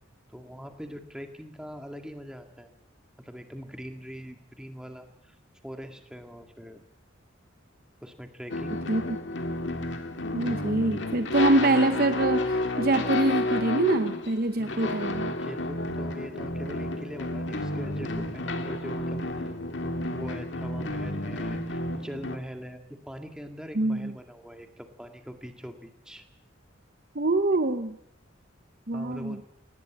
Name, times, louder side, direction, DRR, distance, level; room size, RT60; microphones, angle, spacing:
voice 1, 0.3-2.7 3.2-5.4 5.6-6.8 8.0-8.8 14.6-15.0 15.3-19.5 19.8-26.2 28.9-29.4, equal, 5° right, 5 dB, 2.0 m, -42 dB
sound 1, 8.5-22.4, left 2 dB, 65° left, 1.9 m, -31 dB
voice 2, 10.3-15.3 23.8-24.1 27.1-28.0 28.9-29.4, right 2 dB, 50° right, 9 dB, 0.9 m, -25 dB
19.5 x 18.0 x 9.0 m, 0.74 s
head